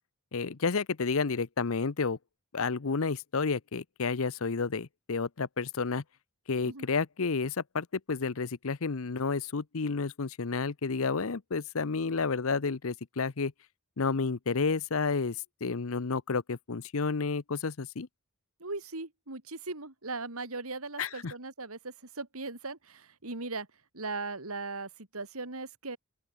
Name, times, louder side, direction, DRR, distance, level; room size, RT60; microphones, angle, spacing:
voice 1, 0.3-2.2 2.5-6.0 6.5-13.5 14.0-18.1 21.0-21.3, left 4 dB, 65° left, 0.7 m, -31 dB
voice 2, 18.6-23.7 23.9-26.0, right 3 dB, 75° right, 3.3 m, -38 dB
open air
head